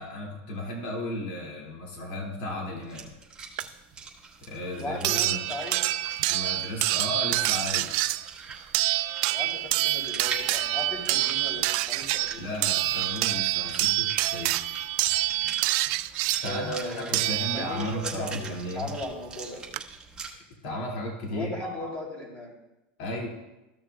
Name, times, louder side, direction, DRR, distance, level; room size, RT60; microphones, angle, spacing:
voice 1, 0.0-3.1 4.5-5.4 6.3-8.0 12.4-14.5 16.4-18.9 20.6-21.9 23.0-23.3, left 1 dB, 70° left, -2 dB, 2.6 m, -34 dB
sound 1, 2.8-20.3, right 5 dB, 15° right, 1.6 m, -43 dB
sound 2, 3.6-3.7 5.0-18.0 19.3-19.4 19.7-19.8, right 18 dB, 60° right, 0.4 m, -27 dB
voice 2, 4.8-5.9 9.3-12.4 16.4-17.2 17.5-19.7 21.3-22.6, left 1 dB, 20° left, -2 dB, 3.3 m, -37 dB
14.5 x 6.5 x 2.4 m, 0.99 s
supercardioid pair, 130°, 6 cm